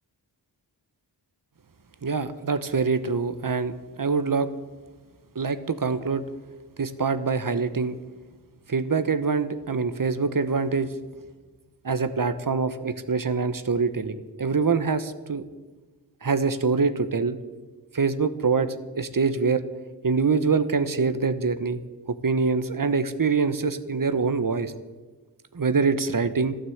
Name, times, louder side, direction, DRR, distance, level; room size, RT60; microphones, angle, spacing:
voice 1, 2.0-4.5 5.3-6.2 6.8-8.0 8.7-10.9 11.8-15.4 16.2-17.4 17.9-19.6 20.0-21.8 22.1-24.7 25.5-26.6, right 4 dB, 50° right, 12 dB, 1.1 m, -24 dB
12.5 x 12.5 x 8.0 m, 1.3 s
cardioid pair, 50°, 43 cm